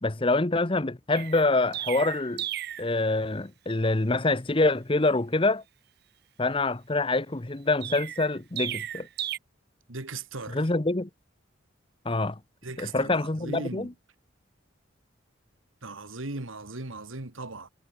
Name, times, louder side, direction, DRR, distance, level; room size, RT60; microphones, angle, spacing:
voice 1, 0.0-2.4 2.8-5.6 6.4-9.1 10.5-11.1 12.0-12.4 12.8-13.9, left 2 dB, 25° left, 0.9 m, -26 dB
Chirp tweet, 1.1-2.9 7.8-9.4, right 12 dB, 50° right, 0.9 m, -34 dB
voice 2, 9.9-10.7 12.6-13.9 15.8-17.7, right 2 dB, 80° right, 2.4 m, -38 dB
head